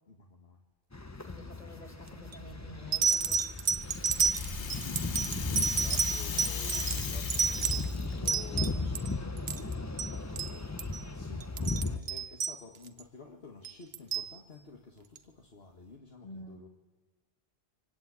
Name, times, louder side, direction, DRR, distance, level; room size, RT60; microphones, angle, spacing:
voice 1, 0.1-0.6 4.2-9.2 10.8-16.7, left 4 dB, 65° left, 0 dB, 2.0 m, -51 dB
sound 1, 0.9-12.0, left 3 dB, 15° left, 0.9 m, -36 dB
voice 2, 1.2-3.5 5.9-6.2 6.5-7.2 8.1-9.7 16.2-16.7, left 1 dB, 35° left, 2 dB, 4.8 m, -49 dB
sound 2, 2.1-2.4 2.9-9.1 9.4-10.1 10.4-10.5 10.8-11.0 11.4-13.0 13.6-14.3 15.2-15.3, right 6 dB, 65° right, 1.3 m, -30 dB
Rattle (instrument), 3.5-8.3, left 6 dB, 90° left, 1.5 m, -40 dB
25.5 x 19.5 x 8.5 m, 1.2 s
omnidirectional pair, 1.1 m